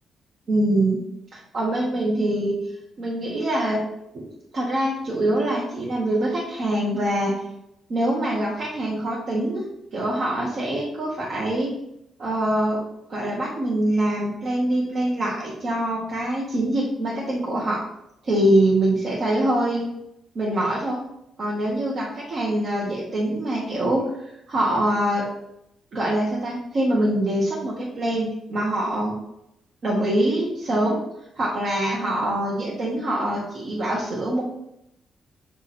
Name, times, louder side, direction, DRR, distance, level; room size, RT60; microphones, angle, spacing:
voice 1, 0.5-1.0 1.3-2.5 3.0-3.8 4.1-4.2 4.5-7.3 7.9-9.6 9.9-11.7 12.2-12.8 13.1-17.8 18.2-19.9 20.3-21.0 21.4-25.2 25.9-29.1 29.8-31.0 31.3-34.4, right 1 dB, 50° right, -5 dB, 1.5 m, -24 dB
7.4 x 3.7 x 4.3 m, 0.82 s
cardioid pair, 100°, 0 cm